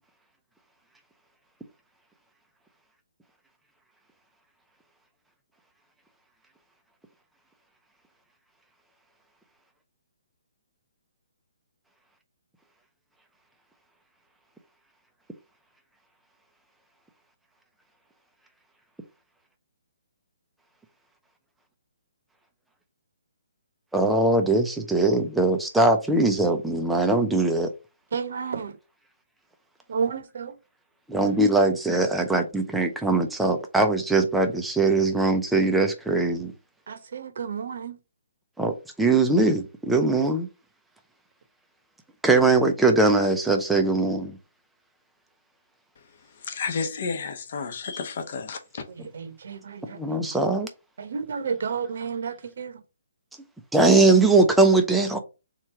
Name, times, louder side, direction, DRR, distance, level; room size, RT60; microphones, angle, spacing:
voice 1, 23.9-27.7 31.1-36.5 38.6-40.5 42.2-44.4 49.9-50.7 53.7-55.2, right 2 dB, 5° right, 0.5 m, -21 dB
voice 2, 28.1-28.8 29.9-30.6 36.9-38.0 48.9-50.4 51.0-52.8, right 6 dB, 60° right, 0.8 m, -32 dB
voice 3, 46.4-48.8, left 5 dB, 45° left, 0.9 m, -31 dB
3.7 x 3.0 x 4.4 m
hypercardioid pair, 165°, 0 cm